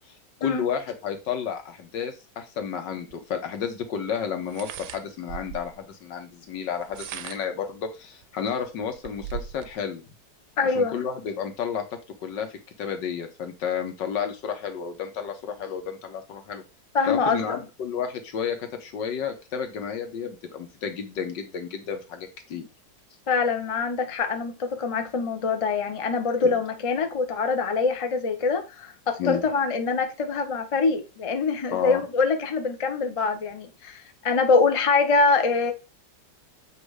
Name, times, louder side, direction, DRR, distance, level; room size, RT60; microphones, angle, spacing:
voice 1, 0.4-10.0 10.7-16.6 17.1-22.7 26.4-26.5 29.2-29.4 31.7-32.0, left 7 dB, 85° left, 1.8 m, -31 dB
sound 1, 3.1-3.2 4.4-5.8 6.7-7.6 8.2-8.3 8.6-9.7, right 10 dB, 75° right, 1.1 m, -38 dB
voice 2, 10.6-11.0 16.9-17.4 23.3-35.7, left 4 dB, 40° left, 0.5 m, -24 dB
7.7 x 2.8 x 4.7 m
omnidirectional pair, 1.9 m